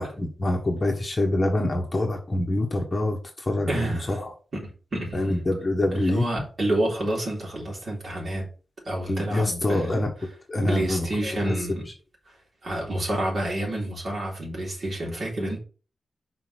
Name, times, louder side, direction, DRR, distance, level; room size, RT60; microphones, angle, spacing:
voice 1, 0.0-4.3 5.1-6.3 9.1-10.1 10.5-11.1, left 1 dB, 20° left, 1.2 m, -25 dB
voice 2, 3.7-4.2 4.5-5.4 5.9-8.5 8.9-10.1 10.6-11.9 12.3-12.4 12.6-15.6, right 1 dB, 40° right, 3.7 m, -29 dB
5.9 x 4.3 x 6.3 m
wide cardioid pair, 180°, 0 cm